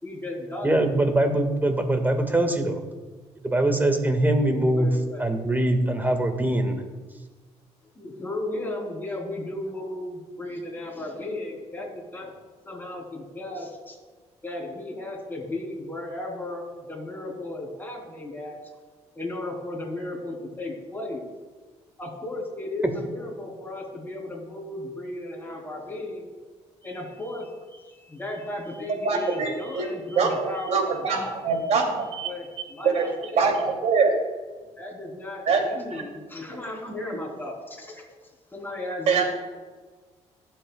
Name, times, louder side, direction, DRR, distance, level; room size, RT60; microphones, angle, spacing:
voice 1, 0.0-0.8 4.7-5.2 8.0-12.3 12.6-14.0 14.4-18.6 19.1-21.2 22.0-26.3 26.8-31.7 32.0-33.5 34.8-38.0 38.5-39.2, left 1 dB, 15° left, -1 dB, 3.6 m, -35 dB
voice 2, 0.6-2.8 3.4-4.9 5.2-6.8, right 1 dB, 15° right, 5 dB, 1.8 m, -23 dB
voice 3, 29.0-29.9 30.2-32.3 32.8-33.1 33.3-34.1 35.5-36.0 39.1-39.2, right 5 dB, 65° right, 2 dB, 2.7 m, -24 dB
23.5 x 8.0 x 2.3 m, 1.4 s
cardioid pair, 85°, 12 cm